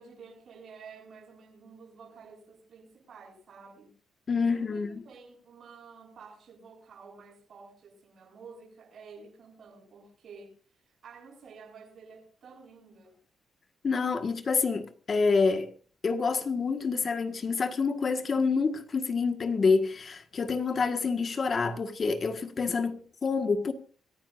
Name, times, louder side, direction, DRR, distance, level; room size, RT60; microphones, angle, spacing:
voice 1, 0.0-3.9 4.5-10.6 10.8-13.2, right 5 dB, 50° right, 7.9 m, -51 dB
voice 2, 4.3-5.0 13.8-15.7 16.0-23.7, left 4 dB, 35° left, 1.6 m, -27 dB
26.5 x 15.0 x 2.6 m
cardioid pair, 135°, 0 cm